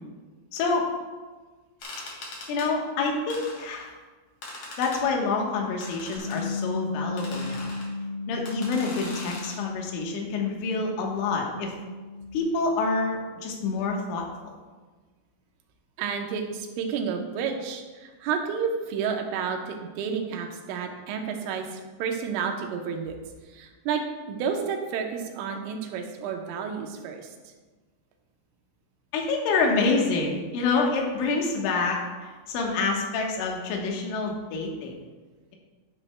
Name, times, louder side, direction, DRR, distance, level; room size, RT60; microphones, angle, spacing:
voice 1, 0.5-0.9 2.5-3.9 4.8-7.7 8.3-11.7 12.3-14.5 29.1-34.9, left 3 dB, 75° left, 0 dB, 3.6 m, -27 dB
sound 1, 1.8-2.7 3.3-3.9 4.4-5.0 5.8-6.4 7.2-7.9 8.4-9.6, left 2 dB, 50° left, 2.3 m, -40 dB
Bass guitar, 6.2-12.4, left 3 dB, 55° right, 3.1 m, -35 dB
voice 2, 16.0-23.2 23.5-27.3, right 6 dB, 80° right, 3 dB, 3.3 m, -31 dB
11.5 x 10.5 x 2.2 m, 1.3 s
omnidirectional pair, 5.9 m